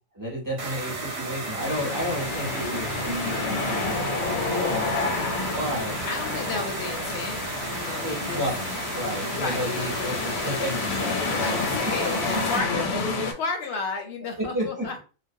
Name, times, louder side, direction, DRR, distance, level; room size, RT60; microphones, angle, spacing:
voice 1, 0.1-5.2 5.5-6.0 8.0-11.9 12.6-13.0 14.4-14.9, equal, 20° right, -3 dB, 0.5 m, -32 dB
sound 1, 0.6-12.6, right 3 dB, 60° right, 0.8 m, -34 dB
sound 2, 1.6-13.3, left 3 dB, 80° left, 1.0 m, -29 dB
voice 2, 6.1-7.4 7.7-8.4 9.0-10.7 11.4-15.0, left 4 dB, 60° left, 4 dB, 0.7 m, -33 dB
2.3 x 2.1 x 2.6 m, 0.35 s
omnidirectional pair, 1.4 m